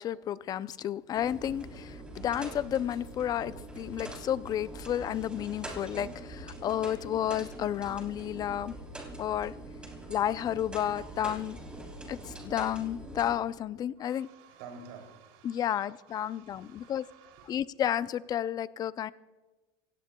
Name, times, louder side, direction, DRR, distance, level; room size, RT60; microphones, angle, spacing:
voice 1, 0.0-8.8 9.2-9.5 10.1-11.6 12.1-14.3 15.4-17.0 17.5-19.1, left 10 dB, 30° left, 0.5 m, -32 dB
sound 1, 1.1-13.3, right 1 dB, 10° right, 3.3 m, -44 dB
voice 2, 14.0-17.6, right 5 dB, 70° right, 3.0 m, -51 dB
28.0 x 17.0 x 2.3 m
supercardioid pair, 130°, 13 cm